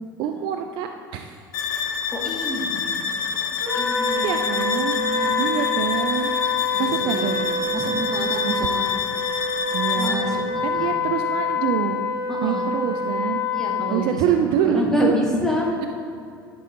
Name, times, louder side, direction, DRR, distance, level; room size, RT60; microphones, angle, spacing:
voice 1, 0.2-1.4 4.2-6.3 6.8-7.4 8.5-8.6 9.7-12.0 12.4-13.4 13.9-15.2, right 9 dB, 45° right, 6 dB, 0.3 m, -26 dB
sound 1, 1.5-10.3, left 6 dB, 60° left, 0.6 m, -27 dB
voice 2, 2.1-2.9 3.7-5.4 6.7-7.4 7.7-8.9 9.9-11.1 12.3-12.7 13.5-15.8, left 1 dB, 5° left, -2 dB, 1.4 m, -28 dB
Wind instrument woodwind instrument, 3.6-14.0, left 4 dB, 80° left, 1.3 m, -26 dB
10.5 x 5.3 x 2.8 m, 2.4 s
figure-of-eight pair, 70°, 12 cm